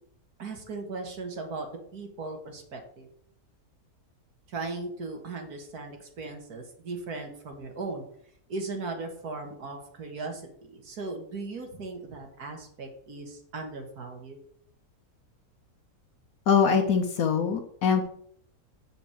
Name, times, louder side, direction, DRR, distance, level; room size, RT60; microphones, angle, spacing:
voice 1, 0.4-1.7 1.9-3.1 4.5-8.0 8.5-14.4, right 3 dB, 75° right, 4 dB, 2.2 m, -37 dB
voice 2, 16.5-18.1, left 6 dB, 70° left, 4 dB, 1.4 m, -23 dB
7.5 x 5.2 x 7.4 m, 0.64 s
omnidirectional pair, 1.6 m